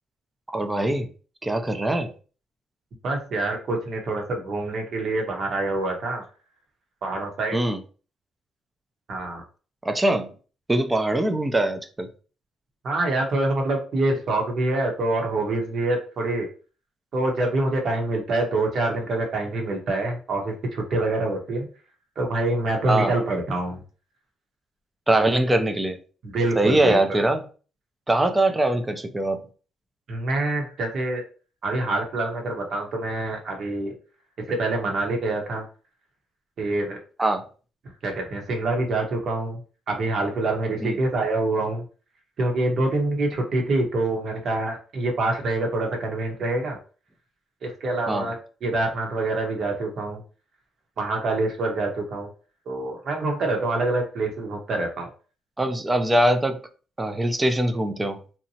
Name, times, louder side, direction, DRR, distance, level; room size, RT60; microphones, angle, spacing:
voice 1, 0.5-1.1 1.4-2.1 7.5-7.8 9.8-10.3 10.7-12.1 22.9-23.1 25.1-26.0 26.6-27.4 28.1-29.5 37.2-37.4 40.8-41.0 48.1-48.3 55.6-56.6 57.0-58.2, right 1 dB, 15° right, 7 dB, 0.5 m, -22 dB
voice 2, 3.0-6.2 7.0-7.6 9.1-9.4 12.8-16.5 17.1-21.7 22.2-23.8 26.2-27.0 30.1-31.2 31.6-33.9 34.5-35.7 36.6-37.0 38.0-39.6 39.9-41.8 42.4-46.8 47.6-48.4 48.6-50.2 51.0-52.3 52.7-55.1, right 2 dB, 60° right, 2 dB, 0.9 m, -26 dB
2.8 x 2.1 x 2.7 m, 0.37 s
cardioid pair, 90°, 0 cm